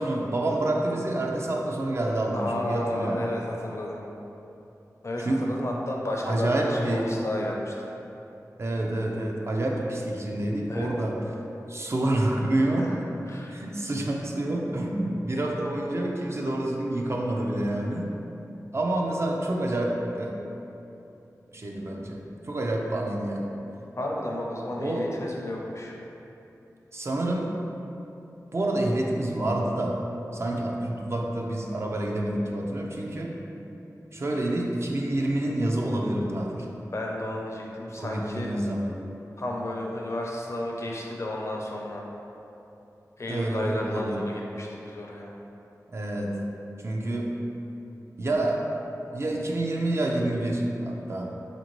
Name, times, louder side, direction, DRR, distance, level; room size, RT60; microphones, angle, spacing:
voice 1, 0.0-3.3 5.2-5.6 6.2-7.2 8.6-11.2 11.7-12.9 13.5-18.2 18.7-20.4 21.5-23.6 24.8-25.1 26.9-27.6 28.5-30.1 30.3-33.4 34.1-36.7 38.0-39.0 43.3-44.2 45.9-46.5 46.8-47.5 48.2-48.7 49.1-51.4, right 1 dB, 45° right, 0 dB, 0.4 m, -28 dB
voice 2, 2.3-4.0 5.0-7.9 10.7-10.9 12.6-13.0 13.3-13.6 24.0-25.9 36.9-38.5 39.4-42.1 43.2-45.3, left 1 dB, 50° left, -2 dB, 0.5 m, -32 dB
4.2 x 2.6 x 3.0 m, 2.9 s
wide cardioid pair, 85°, 6 cm